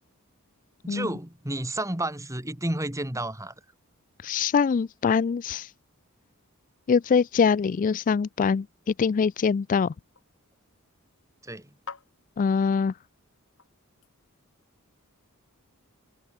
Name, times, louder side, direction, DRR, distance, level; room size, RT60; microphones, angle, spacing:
voice 1, 0.8-3.5 11.4-11.7, right 1 dB, 15° right, 2.7 m, -31 dB
voice 2, 4.2-5.7 6.9-9.9 12.4-12.9, left 6 dB, 35° left, 0.3 m, -23 dB
sound 1, 8.8-14.6, left 5 dB, 65° left, 5.9 m, -51 dB
head